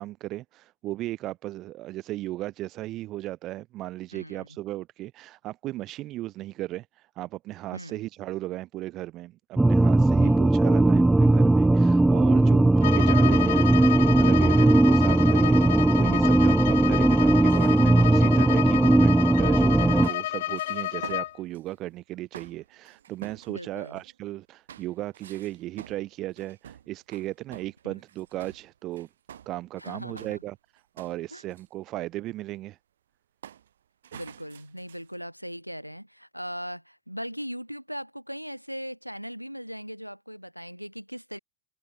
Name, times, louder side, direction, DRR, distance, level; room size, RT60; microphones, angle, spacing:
voice 1, 0.0-15.6 16.0-29.1 29.5-30.6 31.0-32.8, right 16 dB, 35° right, 0.7 m, -36 dB
voice 2, 4.1-4.5 7.7-8.0 10.1-10.5 12.4-12.6 14.4-14.8 16.7-16.9 23.5-24.0 27.8-27.9 29.8-30.4 31.3-31.4 34.1-41.4, equal, 90° right, 3.6 m, -39 dB
sound 1, 9.6-20.1, right 2 dB, 5° right, 0.4 m, -19 dB
Bowed string instrument, 12.8-21.4, left 14 dB, 55° left, 1.2 m, -30 dB
sound 2, 17.5-19.4 20.0-21.7 22.3-24.2 24.7-30.5 30.8-31.7 33.4-33.7 34.0-35.2, right 9 dB, 65° right, 6.8 m, -48 dB
figure-of-eight pair, 90°, 0 cm